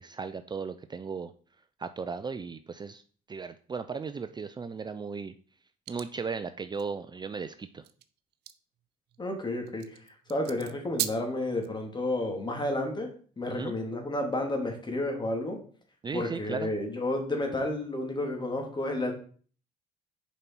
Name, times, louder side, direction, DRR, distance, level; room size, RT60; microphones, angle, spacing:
voice 1, 0.0-1.3 1.8-3.0 3.3-5.3 5.9-7.8 13.5-13.7 16.0-16.7, right 5 dB, 25° right, 10 dB, 0.5 m, -36 dB
sound 1, 5.9-6.1 6.7-6.8 7.8-11.7, right 13 dB, 80° right, 0.7 m, -38 dB
voice 2, 9.2-10.0 10.3-13.1 13.4-15.6 16.1-19.1, left 1 dB, 25° left, 2 dB, 2.5 m, -31 dB
7.1 x 5.3 x 4.5 m, 0.44 s
supercardioid pair, 80°, 17 cm